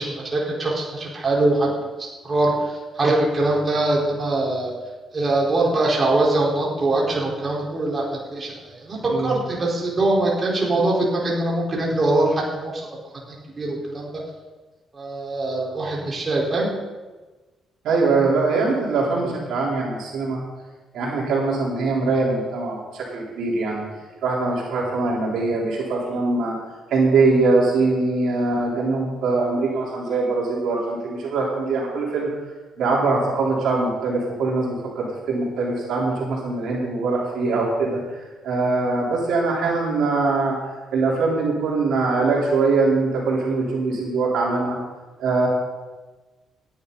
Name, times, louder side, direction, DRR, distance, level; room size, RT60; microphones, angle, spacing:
voice 1, 0.0-1.7 2.0-4.7 5.1-12.8 13.6-14.1 14.9-16.7, right 2 dB, 30° right, -4 dB, 4.5 m, -22 dB
voice 2, 17.8-20.4 20.9-23.8 24.2-26.5 26.9-32.3 32.8-44.8 45.2-45.5, right 3 dB, 75° right, -4 dB, 4.1 m, -22 dB
17.5 x 11.0 x 4.1 m, 1.2 s
cardioid pair, 90°, 0 cm